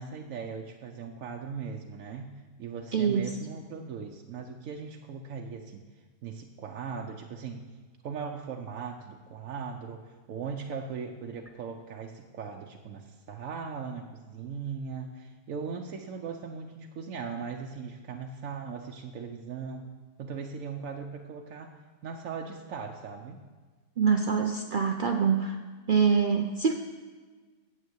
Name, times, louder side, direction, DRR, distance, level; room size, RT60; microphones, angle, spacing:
voice 1, 0.0-5.9 6.2-7.7 8.0-19.9 20.2-21.7 22.0-23.4, right 5 dB, 65° right, 2 dB, 1.0 m, -39 dB
voice 2, 2.9-3.3 24.0-25.6 25.9-26.7, right 6 dB, 85° right, 4 dB, 0.4 m, -25 dB
9.7 x 7.5 x 7.9 m, 1.4 s
omnidirectional pair, 1.6 m